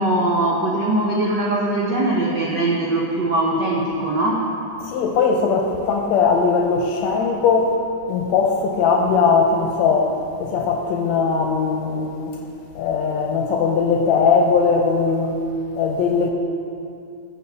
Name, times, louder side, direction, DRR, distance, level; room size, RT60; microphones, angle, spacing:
voice 1, 0.0-4.5, right 1 dB, 85° right, -3 dB, 0.9 m, -21 dB
voice 2, 4.8-7.7 8.1-12.4 12.8-15.4 15.8-16.3, left 5 dB, 75° left, 3 dB, 1.8 m, -19 dB
9.4 x 6.5 x 6.9 m, 2.5 s
omnidirectional pair, 3.5 m